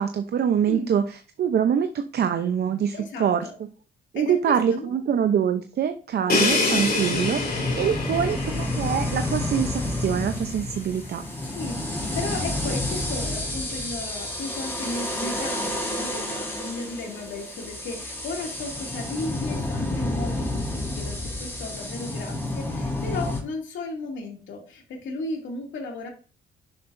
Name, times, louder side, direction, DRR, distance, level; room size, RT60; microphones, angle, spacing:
voice 1, 0.0-2.9 3.2-3.5 4.1-11.2, right 8 dB, 55° right, 8 dB, 0.7 m, -24 dB
voice 2, 2.9-3.5 4.1-4.9 8.1-8.3 11.4-26.1, left 2 dB, 70° left, 0 dB, 2.6 m, -35 dB
Crash cymbal, 6.3-10.1, left 3 dB, 50° left, 3.0 m, -26 dB
sound 1, 6.3-23.4, left 1 dB, 10° left, 3.5 m, -30 dB
9.9 x 7.6 x 2.6 m, 0.38 s
cardioid pair, 90°, 20 cm